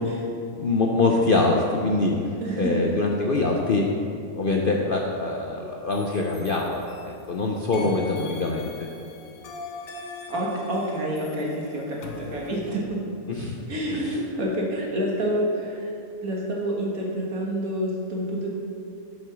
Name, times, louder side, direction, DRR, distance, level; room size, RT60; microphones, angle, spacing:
voice 1, 0.6-8.9 13.3-13.6 13.9-14.0, left 3 dB, 55° left, 0 dB, 0.6 m, -24 dB
voice 2, 2.4-2.9 7.8-8.2 10.3-13.0 13.7-15.9 16.2-18.5, right 1 dB, 70° right, -3 dB, 2.0 m, -28 dB
sound 1, 5.9-7.3 7.7-12.8, left 3 dB, 70° left, 1.2 m, -42 dB
7.7 x 5.6 x 6.2 m, 2.5 s
omnidirectional pair, 1.6 m